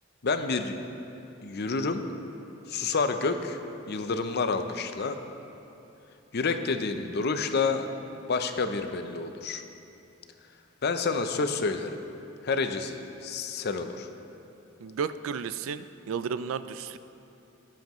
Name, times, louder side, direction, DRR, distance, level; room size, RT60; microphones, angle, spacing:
voice 1, 0.2-0.8 1.4-2.0 2.7-3.6 3.9-5.2 6.3-7.9 8.3-9.6 10.8-12.0 12.4-14.1, left 4 dB, 50° left, 8 dB, 0.6 m, -29 dB
voice 2, 14.8-17.0, right 6 dB, 70° right, 13 dB, 0.4 m, -33 dB
17.0 x 7.5 x 3.0 m, 2.9 s
head